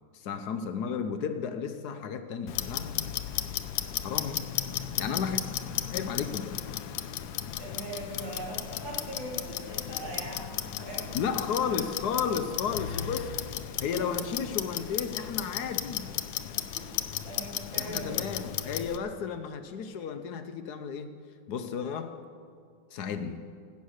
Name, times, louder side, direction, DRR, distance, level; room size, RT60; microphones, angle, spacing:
voice 1, 0.1-3.1 4.0-4.5 5.0-5.4 5.9-6.6 11.1-13.4 13.8-16.1 17.7-21.2 21.5-22.2 22.9-23.5, left 6 dB, 65° left, 1.2 m, -33 dB
Clock, 2.5-19.0, left 11 dB, 90° left, 1.4 m, -35 dB
voice 2, 7.6-11.1 13.9-14.1 16.7-16.9 17.2-18.2 18.5-18.6 20.0-20.1, right 1 dB, 85° right, 4.0 m, -40 dB
17.5 x 8.5 x 6.4 m
omnidirectional pair, 2.0 m